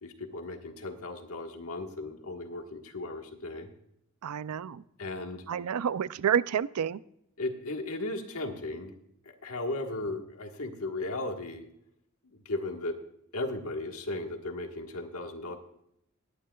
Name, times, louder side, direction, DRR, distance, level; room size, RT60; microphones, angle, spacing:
voice 1, 0.0-3.7 5.0-5.4 7.4-8.9 9.2-11.7 12.4-13.0 13.3-15.6, left 2 dB, 75° left, 4 dB, 1.5 m, -36 dB
voice 2, 4.2-4.8 5.5-7.0, right 8 dB, 90° right, 18 dB, 0.4 m, -29 dB
18.5 x 10.5 x 2.3 m, 0.76 s
head